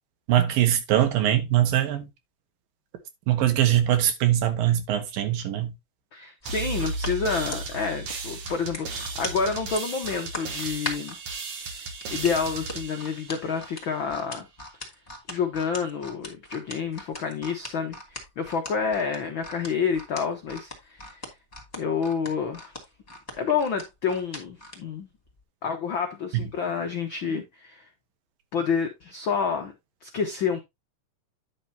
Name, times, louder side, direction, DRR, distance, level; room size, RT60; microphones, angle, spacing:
voice 1, 0.3-2.1 3.3-5.7 26.3-26.4, right 12 dB, 85° right, 3.1 m, -22 dB
voice 2, 6.1-11.2 11.7-14.5 15.3-21.2 21.8-22.7 23.4-25.1 25.6-27.8 28.5-29.7 30.0-30.6, left 6 dB, 80° left, 1.1 m, -29 dB
sound 1, 6.4-11.2 12.0-24.8 25.2-25.4, left 1 dB, 10° left, 2.3 m, -39 dB
sound 2, 6.5-14.0, right 3 dB, 60° right, 1.7 m, -35 dB
10.0 x 6.8 x 2.8 m
omnidirectional pair, 3.9 m